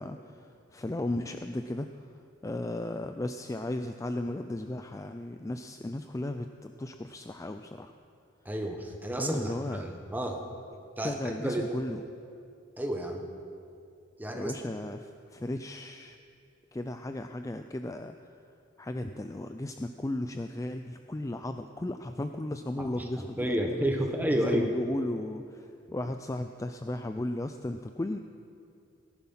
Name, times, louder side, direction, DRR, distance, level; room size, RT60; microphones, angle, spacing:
voice 1, 0.0-2.1 2.4-7.9 9.2-9.8 11.0-12.0 14.3-16.2 16.7-18.3 18.8-23.9 24.4-28.2, left 1 dB, 15° left, 7 dB, 0.4 m, -35 dB
voice 2, 8.4-10.4 11.0-11.7 12.8-13.3 14.2-14.5 23.2-24.7, right 1 dB, 10° right, 2 dB, 1.3 m, -31 dB
18.5 x 11.0 x 5.7 m, 2.5 s
head